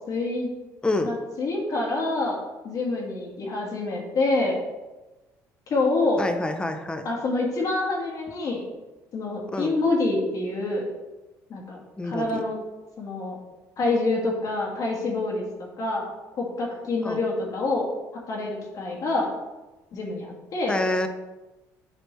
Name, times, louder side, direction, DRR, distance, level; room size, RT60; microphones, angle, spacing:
voice 1, 0.1-0.5 1.0-2.4 2.6-4.6 5.7-6.2 7.0-8.6 9.1-10.9 11.5-11.8 12.0-12.6 13.0-13.4 13.8-15.4 15.8-16.1 16.4-17.9 18.3-19.3 19.9-20.7, left 2 dB, 55° left, -1 dB, 1.7 m, -26 dB
voice 2, 6.2-7.0 9.5-9.7 12.0-12.4 17.0-17.2 20.7-21.1, left 2 dB, 15° left, 7 dB, 0.7 m, -27 dB
7.7 x 4.3 x 3.2 m, 1.1 s
supercardioid pair, 80°, 7 cm